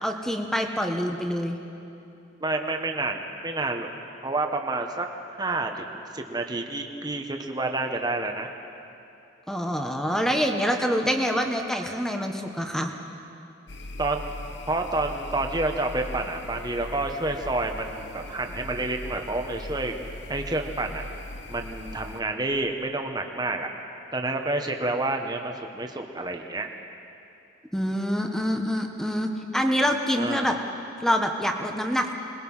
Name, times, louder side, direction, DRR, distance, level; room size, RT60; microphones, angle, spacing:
voice 1, 0.0-1.6 9.5-12.9 27.7-30.5 31.0-32.2, equal, ahead, 3 dB, 1.4 m, -26 dB
voice 2, 2.4-3.9 4.2-5.1 5.4-8.5 14.0-14.2 14.7-19.9 20.3-21.0 21.5-23.7 24.1-26.7 30.2-30.5, right 2 dB, 20° right, 3 dB, 1.3 m, -29 dB
sound 1, 13.7-22.2, left 1 dB, 70° left, 1.1 m, -39 dB
27.0 x 21.0 x 5.7 m, 2.8 s
head